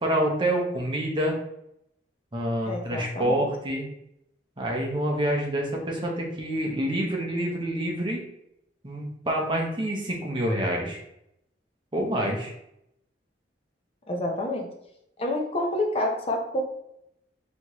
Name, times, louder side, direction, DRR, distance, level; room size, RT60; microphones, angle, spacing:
voice 1, 0.0-1.3 2.3-3.9 4.6-8.2 8.8-11.0 11.9-12.5, right 1 dB, 25° right, -1 dB, 0.8 m, -27 dB
voice 2, 2.7-3.4 14.1-14.7 15.2-16.6, left 1 dB, 35° left, 1 dB, 0.7 m, -28 dB
4.1 x 3.1 x 2.9 m, 0.79 s
head